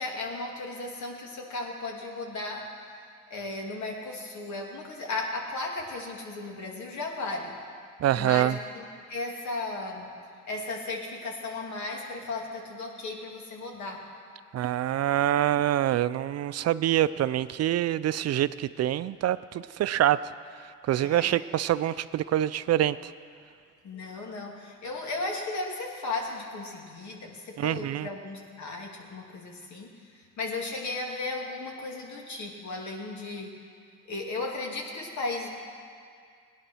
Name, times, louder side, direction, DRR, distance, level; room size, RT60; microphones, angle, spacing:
voice 1, 0.0-2.6 3.3-7.5 8.1-10.1 10.5-14.0 21.0-21.4 23.8-33.5 34.1-35.5, left 3 dB, 70° left, 0 dB, 2.6 m, -35 dB
voice 2, 8.0-8.6 14.5-20.2 20.9-23.1 27.6-28.1, right 12 dB, 55° right, 15 dB, 0.5 m, -25 dB
17.5 x 10.5 x 6.3 m, 2.2 s
cardioid pair, 90°, 30 cm